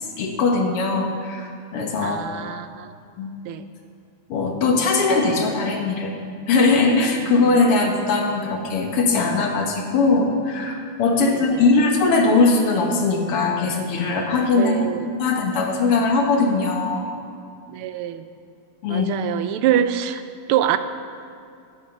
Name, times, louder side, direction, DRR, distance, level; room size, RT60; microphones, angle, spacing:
voice 1, 0.2-2.3 3.2-3.3 4.3-6.2 6.5-14.9 15.2-17.1 18.8-19.1, left 3 dB, 90° left, 2 dB, 2.3 m, -20 dB
voice 2, 2.0-2.9 3.4-3.6 11.2-11.6 14.6-15.0 17.7-18.2 18.9-20.2 20.5-20.8, right 10 dB, 80° right, 11 dB, 1.5 m, -24 dB
14.0 x 8.4 x 5.3 m, 2.5 s
omnidirectional pair, 2.4 m